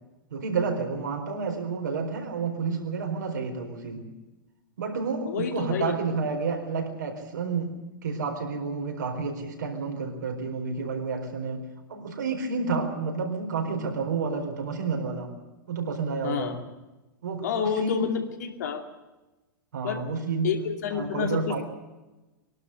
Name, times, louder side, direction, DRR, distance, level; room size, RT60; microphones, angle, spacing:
voice 1, 0.3-4.1 4.8-7.7 8.0-15.3 15.7-16.5 17.2-18.1 19.7-20.5 20.9-21.6, right 4 dB, 60° right, 3 dB, 4.4 m, -30 dB
voice 2, 5.2-6.0 16.2-16.6 17.4-18.8 19.8-20.1 20.4-21.6, left 7 dB, 55° left, 4 dB, 2.6 m, -29 dB
23.5 x 12.5 x 9.9 m, 1.1 s
figure-of-eight pair, 100°, 11 cm